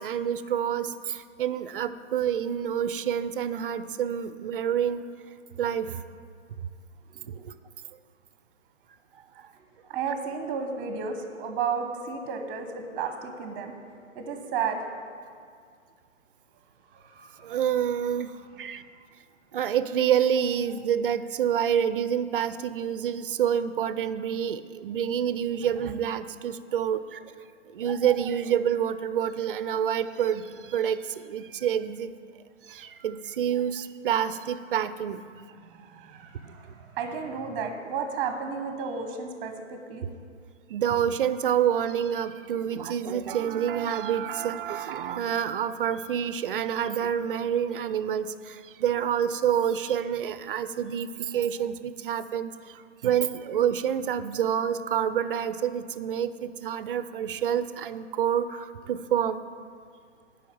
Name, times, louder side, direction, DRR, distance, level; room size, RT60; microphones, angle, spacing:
voice 1, 0.0-5.1 5.6-6.0 7.3-7.5 17.4-18.3 18.6-18.8 19.5-27.2 27.7-32.1 32.7-35.3 40.7-59.4, right 9 dB, 45° right, 13 dB, 0.5 m, -28 dB
voice 2, 9.9-13.7 14.1-14.8 16.9-17.6 35.7-40.1, right 5 dB, 20° right, 6 dB, 1.0 m, -33 dB
8.3 x 5.5 x 7.7 m, 2.1 s
hypercardioid pair, 140°, 37 cm